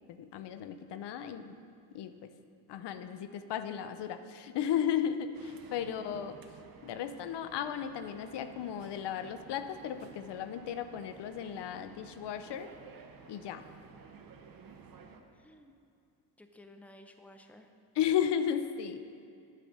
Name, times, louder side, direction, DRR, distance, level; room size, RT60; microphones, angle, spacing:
voice 1, 0.1-1.6 1.9-2.3 2.7-6.3 6.8-12.7 13.3-13.7 17.9-19.0, left 9 dB, 80° left, 10 dB, 0.6 m, -35 dB
sound 1, 5.3-15.2, right 6 dB, 55° right, 0.9 m, -54 dB
voice 2, 5.8-6.2 15.3-15.7 16.4-17.7, left 1 dB, 5° left, 6 dB, 0.6 m, -55 dB
9.9 x 5.1 x 6.4 m, 2.6 s
cardioid pair, 85°, 41 cm